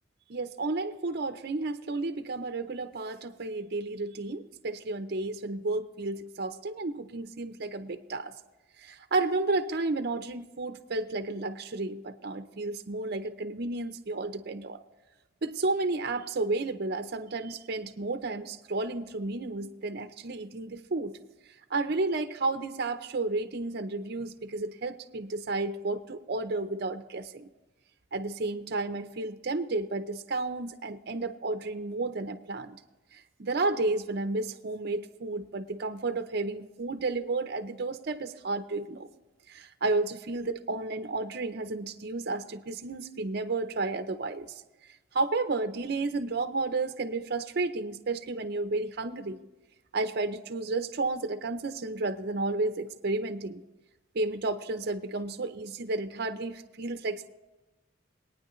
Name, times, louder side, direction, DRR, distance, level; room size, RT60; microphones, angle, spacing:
voice 1, 0.3-8.3 8.8-14.8 15.4-21.2 21.7-27.5 28.1-32.8 33.4-39.1 39.5-44.5 45.1-49.4 49.9-53.6 54.1-57.3, right 3 dB, 60° right, 8 dB, 0.6 m, -32 dB
22.0 x 9.3 x 3.1 m, 1.1 s
head